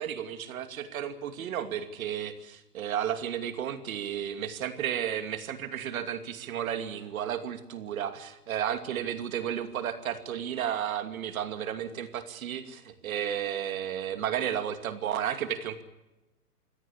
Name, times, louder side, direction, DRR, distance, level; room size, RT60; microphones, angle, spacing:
voice 1, 0.0-15.8, right 9 dB, 60° right, 9 dB, 2.7 m, -33 dB
24.5 x 16.5 x 8.6 m, 1.0 s
hypercardioid pair, 120°, 47 cm